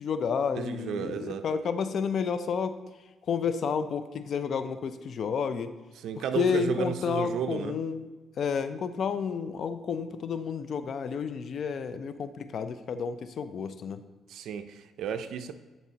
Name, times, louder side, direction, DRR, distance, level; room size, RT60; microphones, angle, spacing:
voice 1, 0.0-2.8 3.3-5.7 6.2-8.0 8.4-14.0, left 6 dB, 60° left, 11 dB, 0.4 m, -30 dB
voice 2, 0.5-1.4 6.0-7.8 14.3-15.5, right 8 dB, 75° right, 9 dB, 0.5 m, -33 dB
10.5 x 4.1 x 2.8 m, 1.2 s
cardioid pair, 90°, 0 cm